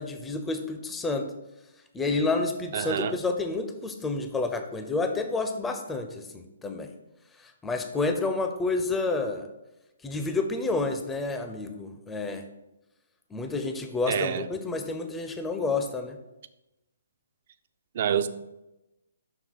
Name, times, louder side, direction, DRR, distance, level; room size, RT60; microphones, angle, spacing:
voice 1, 0.0-1.3 1.9-6.9 7.4-9.5 10.0-12.4 13.3-16.2, left 3 dB, 10° left, 6 dB, 0.4 m, -29 dB
voice 2, 2.7-3.2 14.1-14.5 18.0-18.3, right 8 dB, 50° right, 12 dB, 0.4 m, -27 dB
6.5 x 3.1 x 5.5 m, 0.96 s
hypercardioid pair, 140°, 0 cm